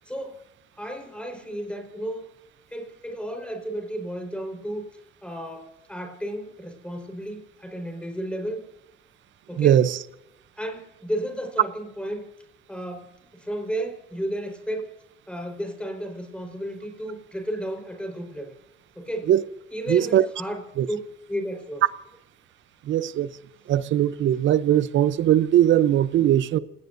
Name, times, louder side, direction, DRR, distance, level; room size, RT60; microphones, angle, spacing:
voice 1, 0.0-0.4 0.8-2.2 2.7-4.9 5.2-8.7 9.5-9.8 10.6-12.3 12.7-14.9 15.3-18.6 18.9-19.3 19.7-21.0 21.3-21.8, equal, 5° left, 4.5 m, -33 dB
voice 2, 9.6-10.0 19.3-19.4 19.9-20.3 20.8-20.9 22.9-23.3 23.7-26.6, right 11 dB, 75° right, 0.8 m, -20 dB
29.0 x 18.5 x 2.7 m
cardioid pair, 90°, 20 cm